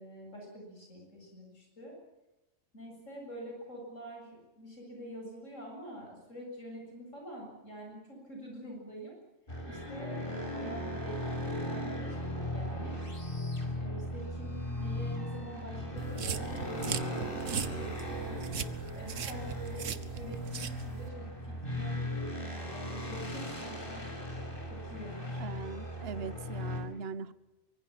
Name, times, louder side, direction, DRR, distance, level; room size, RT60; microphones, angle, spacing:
voice 1, 0.0-1.9 2.7-9.2 9.7-13.0 13.8-18.5 18.9-24.0 24.7-25.4, equal, 85° left, 0 dB, 7.8 m, -46 dB
sound 1, 9.5-26.8, left 1 dB, 45° left, 5.4 m, -38 dB
sound 2, 16.0-21.1, right 7 dB, 80° right, 1.4 m, -39 dB
voice 2, 25.4-27.3, right 5 dB, 55° right, 15 dB, 1.2 m, -41 dB
24.5 x 23.0 x 7.5 m, 1.0 s
omnidirectional pair, 1.3 m